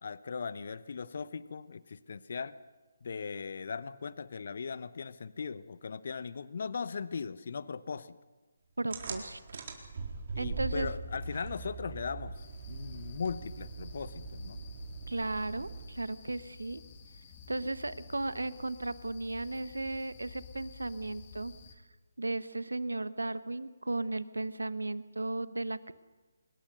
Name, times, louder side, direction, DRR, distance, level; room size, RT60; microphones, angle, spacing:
voice 1, 0.0-2.5 3.0-8.2 10.3-12.4 12.7-14.6, left 5 dB, 55° left, 16 dB, 0.8 m, -38 dB
voice 2, 8.8-9.6 10.4-10.9 15.1-16.8 17.5-21.5 22.2-25.9, right 2 dB, 80° right, 15 dB, 1.0 m, -35 dB
sound 1, 8.9-16.1, right 4 dB, 45° right, 4.1 m, -41 dB
sound 2, 12.3-21.7, left 4 dB, 35° left, 2.9 m, -51 dB
24.5 x 21.0 x 6.6 m, 1.2 s
figure-of-eight pair, 145°, 0 cm